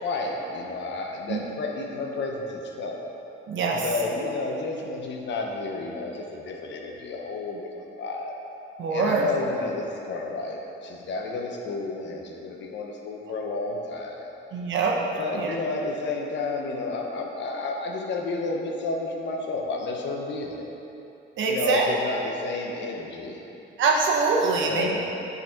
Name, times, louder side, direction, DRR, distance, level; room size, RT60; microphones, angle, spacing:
voice 1, 0.0-3.0 3.8-8.3 8.9-14.3 15.1-20.7 21.4-23.4 24.7-25.0, left 3 dB, 65° left, 0 dB, 1.0 m, -31 dB
voice 2, 3.5-3.8 8.8-9.3 14.5-15.0 15.3-15.5 21.4-21.9 23.8-25.0, right 4 dB, 75° right, -1 dB, 1.1 m, -23 dB
8.3 x 4.1 x 4.5 m, 2.9 s
cardioid pair, 90°, 20 cm